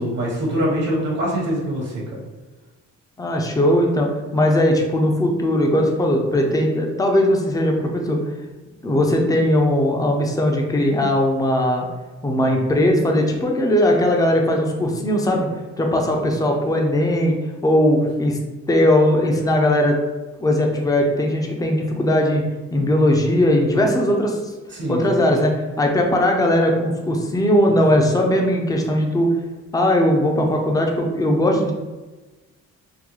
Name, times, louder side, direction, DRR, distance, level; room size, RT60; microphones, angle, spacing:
voice 1, 0.0-2.2 24.7-25.2 27.7-27.8, equal, 55° right, -4 dB, 1.0 m, -24 dB
voice 2, 3.2-8.2 8.8-11.9 12.2-15.5 15.8-17.3 17.6-18.4 18.7-20.0 20.4-22.4 22.7-24.4 24.9-29.3 29.7-31.7, left 1 dB, 10° left, 1 dB, 0.5 m, -19 dB
3.8 x 2.2 x 3.0 m, 1.2 s
cardioid pair, 90°, 30 cm